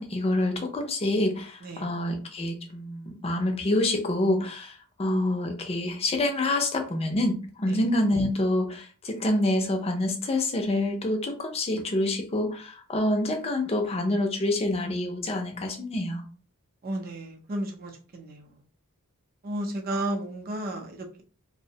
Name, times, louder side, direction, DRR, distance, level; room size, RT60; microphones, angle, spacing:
voice 1, 0.0-16.3, left 1 dB, 25° left, 0.4 m, -27 dB
voice 2, 16.8-18.4 19.4-21.2, right 1 dB, 40° right, 0.5 m, -33 dB
2.6 x 2.0 x 2.7 m
head